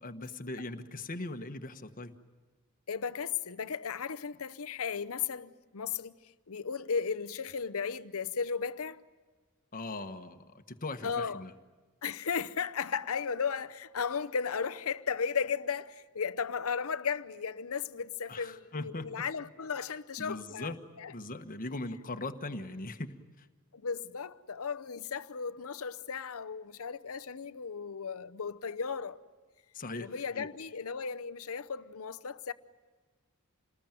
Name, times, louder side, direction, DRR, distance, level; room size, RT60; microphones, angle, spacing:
voice 1, 0.0-2.1 9.7-11.5 18.3-19.2 20.2-20.8 21.1-23.5 29.7-30.1 30.3-30.5, left 2 dB, 40° left, 1.3 m, -40 dB
voice 2, 2.9-6.1 6.5-9.0 11.0-11.4 12.0-20.7 21.0-21.1 23.7-29.2 30.0-32.5, left 6 dB, 65° left, 0.8 m, -35 dB
28.0 x 20.0 x 9.1 m
head